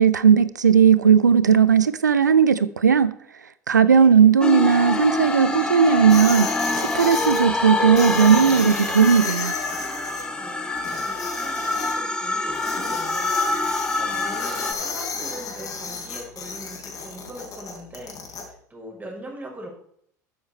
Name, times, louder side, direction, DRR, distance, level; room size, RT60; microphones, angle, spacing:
voice 1, 0.0-3.1 3.7-6.5 6.7-9.5, right 7 dB, 85° right, 0.5 m, -16 dB
voice 2, 3.8-4.2 10.4-19.7, right 1 dB, 20° right, 5.5 m, -41 dB
sound 1, 4.4-14.7, left 2 dB, 10° left, 2.3 m, -26 dB
sound 2, 6.1-7.4 8.0-10.2 10.8-11.9 12.5-18.4, left 5 dB, 40° left, 3.8 m, -33 dB
13.0 x 10.0 x 4.3 m
figure-of-eight pair, 70°, 9 cm